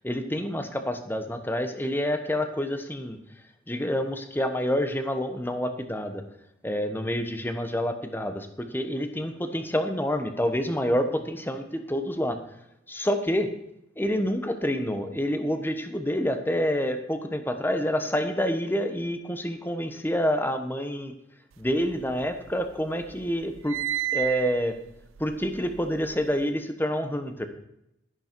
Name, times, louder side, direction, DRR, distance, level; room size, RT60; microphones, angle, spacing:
voice 1, 0.0-3.2 3.7-6.2 6.6-12.4 12.9-13.5 14.0-21.1 21.6-23.8 24.1-24.8 25.2-27.5, equal, 10° left, 7 dB, 1.2 m, -28 dB
sound 1, 21.7-22.7 23.0-26.4, right 14 dB, 90° right, 0.5 m, -33 dB
12.0 x 11.0 x 4.6 m, 0.80 s
head